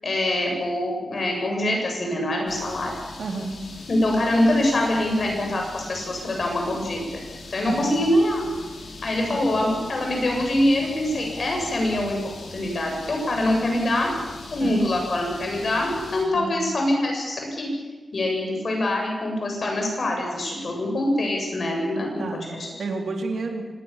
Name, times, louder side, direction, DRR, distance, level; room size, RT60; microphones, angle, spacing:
voice 1, 0.0-2.9 3.9-7.0 7.5-8.4 9.0-12.2 12.5-14.1 14.5-17.7 18.1-22.2 22.6-22.7, left 1 dB, 50° left, 1 dB, 7.9 m, -24 dB
sound 1, 2.5-16.2, left 3 dB, 85° left, 5.1 m, -41 dB
voice 2, 3.2-3.6 7.6-8.0 9.3-9.5 14.6-14.9 16.3-16.7 22.2-23.7, right 3 dB, 80° right, 3 dB, 3.4 m, -31 dB
25.0 x 20.5 x 7.4 m, 1.3 s
wide cardioid pair, 150°, 0 cm